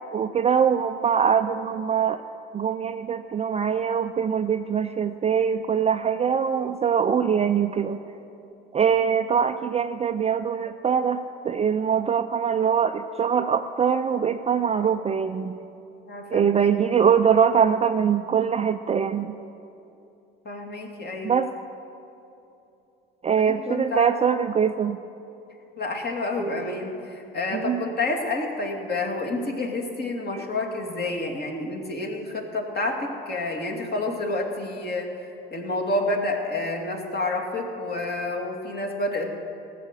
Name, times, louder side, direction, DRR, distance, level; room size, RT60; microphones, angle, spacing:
voice 1, 0.1-2.2 2.5-8.0 8.7-11.2 11.4-15.6 16.3-19.3 21.2-21.5 23.2-25.0 26.4-26.7 27.5-27.8, right 7 dB, 20° right, 8 dB, 0.5 m, -23 dB
voice 2, 16.1-16.7 20.4-21.3 23.4-24.1 25.8-35.1 35.5-39.3, left 2 dB, 35° left, 1 dB, 2.4 m, -29 dB
18.0 x 7.7 x 6.8 m, 2.8 s
hypercardioid pair, 70°, 29 cm